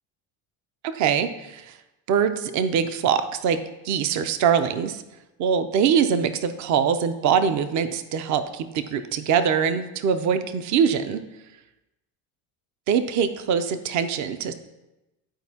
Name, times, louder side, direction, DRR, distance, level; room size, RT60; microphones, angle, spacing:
voice 1, 0.8-1.7 2.1-3.6 3.8-5.0 5.4-11.2 12.9-14.5, right 7 dB, 40° right, 10 dB, 0.5 m, -23 dB
11.5 x 4.3 x 2.8 m, 0.98 s
cardioid pair, 120°, 43 cm